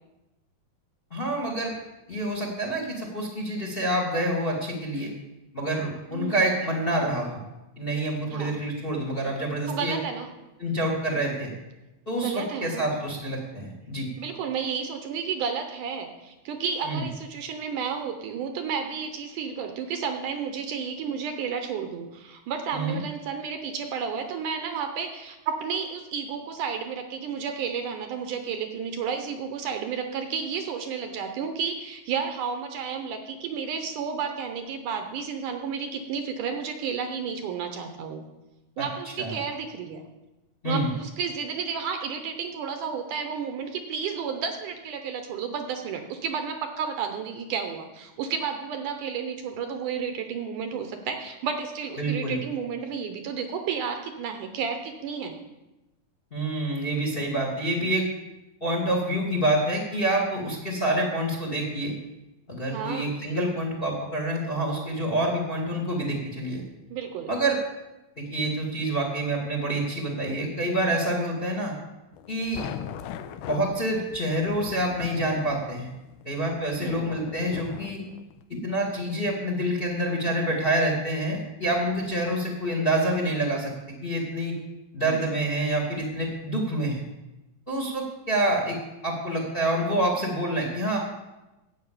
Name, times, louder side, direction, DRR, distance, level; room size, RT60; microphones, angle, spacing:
voice 1, 1.1-1.7 2.1-5.1 5.5-7.4 7.8-9.9 10.6-11.5 12.0-14.1 16.8-17.0 22.7-23.0 38.8-38.9 39.2-39.3 40.6-40.9 52.0-52.4 56.3-58.0 58.6-61.9 62.5-66.6 67.3-67.6 68.2-71.7 72.3-72.6 73.4-75.9 76.2-78.0 78.6-83.7 84.0-84.5 84.9-87.0 87.7-88.8 89.0-91.0, right 1 dB, 25° left, -1 dB, 1.4 m, -27 dB
voice 2, 6.1-6.4 8.3-8.5 9.7-10.3 12.2-13.0 14.2-38.3 38.8-40.1 40.6-55.4 62.7-63.2 66.9-67.3 76.8-77.0 85.1-85.3, right 6 dB, 70° right, 5 dB, 2.2 m, -32 dB
sound 1, 72.1-78.4, left 9 dB, 85° left, 1.8 m, -40 dB
10.5 x 6.6 x 8.6 m, 1.0 s
omnidirectional pair, 4.2 m